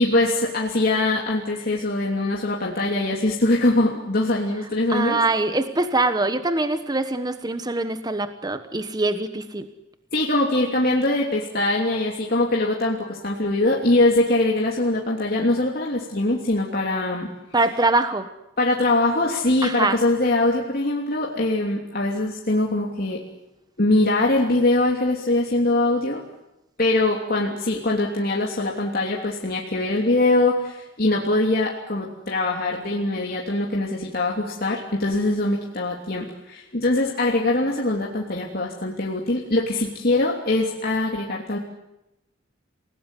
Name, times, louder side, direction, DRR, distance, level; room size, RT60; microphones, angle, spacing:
voice 1, 0.0-5.2 10.1-17.3 18.6-23.2 23.8-26.2 26.8-41.6, left 2 dB, 50° left, -2 dB, 3.1 m, -22 dB
voice 2, 4.9-9.7 17.5-18.3 19.6-20.0, right 2 dB, 20° right, 9 dB, 1.2 m, -23 dB
29.0 x 18.5 x 10.0 m, 0.92 s
head